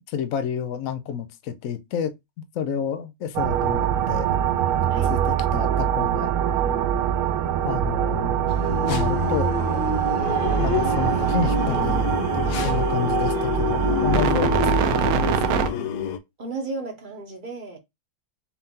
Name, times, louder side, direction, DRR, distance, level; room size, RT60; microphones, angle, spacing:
voice 1, 0.1-2.1 2.5-4.3 5.1-6.3 7.6-8.4 8.9-9.5 10.5-15.8, left 8 dB, 65° left, 1.0 m, -30 dB
sound 1, 3.3-15.7, right 9 dB, 70° right, 1.0 m, -23 dB
voice 2, 7.6-8.0 16.4-17.8, right 3 dB, 35° right, 1.0 m, -34 dB
sound 2, 8.5-16.2, left 9 dB, 80° left, 1.2 m, -28 dB
4.4 x 2.7 x 3.6 m
omnidirectional pair, 1.7 m